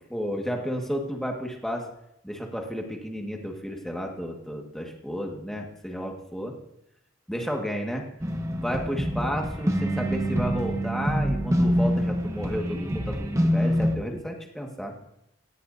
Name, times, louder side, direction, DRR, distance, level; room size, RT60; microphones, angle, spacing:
voice 1, 0.0-1.9 2.2-6.6 7.3-8.1 8.6-14.9, equal, ahead, 1 dB, 1.8 m, -32 dB
sound 1, 8.2-14.0, equal, 15° right, 1.0 m, -26 dB
18.0 x 16.0 x 2.8 m, 0.81 s
head